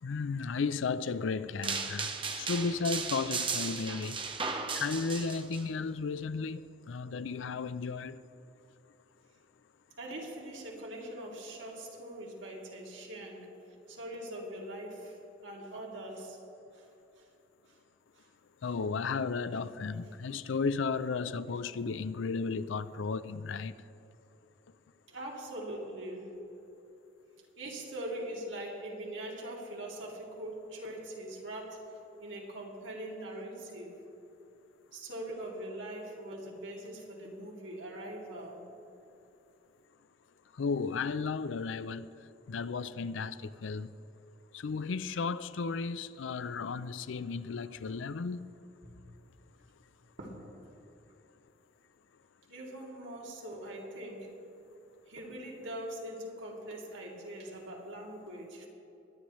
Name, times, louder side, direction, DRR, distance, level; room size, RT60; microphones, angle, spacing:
voice 1, 0.0-4.2 4.7-6.6 6.9-8.2 18.6-23.8 40.6-42.1 42.5-43.9 44.5-48.4, left 4 dB, 80° left, 0.4 m, -34 dB
sound 1, 1.6-5.6, right 5 dB, 25° right, 0.9 m, -35 dB
voice 2, 10.0-13.5 13.9-16.4 16.7-16.9 17.2-17.3 17.7-17.8 18.1-18.3 25.1-26.3 27.6-31.8 32.2-33.9 34.9-38.6 48.8-48.9 50.2-50.7 52.5-54.3 55.1-58.7, right 1 dB, 75° right, 2.5 m, -42 dB
22.5 x 10.0 x 3.1 m
head